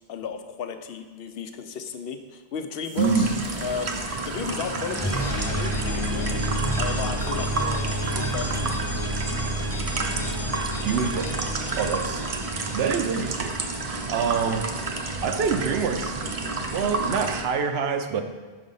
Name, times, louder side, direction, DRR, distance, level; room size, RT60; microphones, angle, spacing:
voice 1, 0.1-6.4 6.7-8.8, left 6 dB, 70° left, 8 dB, 0.8 m, -34 dB
sound 1, 2.8-13.7, equal, 20° left, 0.5 m, -31 dB
sound 2, 3.0-17.4, right 3 dB, 40° right, 0.6 m, -31 dB
voice 2, 3.0-3.4 10.8-11.5 11.8-12.3 12.7-13.5 14.1-14.7 15.2-18.2, right 6 dB, 75° right, 7 dB, 0.9 m, -26 dB
5.8 x 5.1 x 5.4 m, 1.4 s
omnidirectional pair, 1.1 m